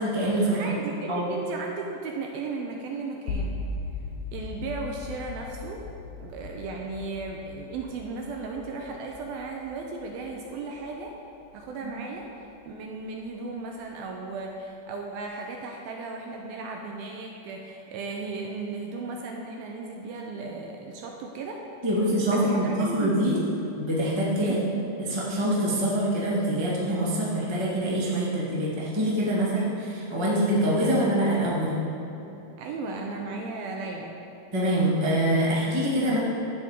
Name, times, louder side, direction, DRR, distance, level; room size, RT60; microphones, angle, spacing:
voice 1, 0.0-0.7 1.1-1.3 21.8-23.4 23.7-24.7 25.0-31.8 34.5-36.2, right 1 dB, 40° right, -7 dB, 0.3 m, -25 dB
voice 2, 0.5-3.6 4.3-5.8 6.2-11.2 11.5-21.6 22.3-23.2 24.4-24.6 32.6-34.2, right 3 dB, 80° right, 1 dB, 2.3 m, -35 dB
sound 1, 3.3-13.3, left 3 dB, 70° left, 2.2 m, -39 dB
10.0 x 7.9 x 5.1 m, 2.9 s
omnidirectional pair, 4.8 m